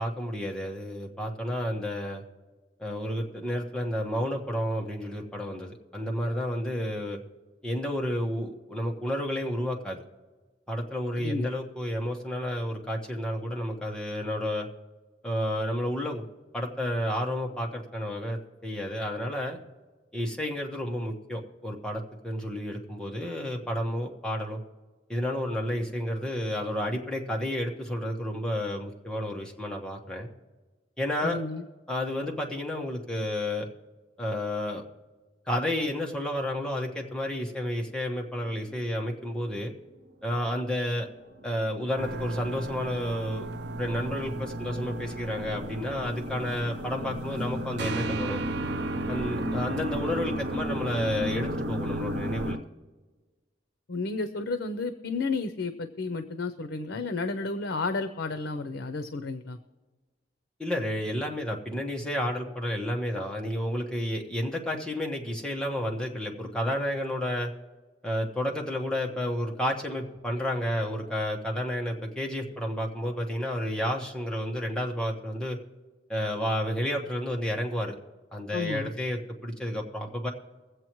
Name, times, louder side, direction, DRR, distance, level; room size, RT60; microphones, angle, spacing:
voice 1, 0.0-2.2 2.8-7.2 7.6-10.0 10.7-14.7 15.2-16.2 16.5-19.6 20.1-24.6 25.1-30.3 31.0-31.4 31.9-33.7 34.2-34.8 35.5-39.7 40.2-41.1 41.4-43.5 43.8-48.4 49.1-52.6 60.6-67.5 68.0-75.6 76.1-78.0 78.3-80.3, equal, 5° left, -1 dB, 1.2 m, -31 dB
voice 2, 11.2-11.5 31.2-31.6 53.9-59.6 78.5-78.9, left 3 dB, 80° left, 9 dB, 0.6 m, -32 dB
sound 1, 37.9-39.0 39.4-39.5 39.9-40.0 40.4-52.6, equal, 85° right, 0.9 m, -36 dB
sound 2, 42.0-52.5, right 2 dB, 65° right, 0.5 m, -36 dB
23.0 x 7.8 x 3.1 m, 1.3 s
head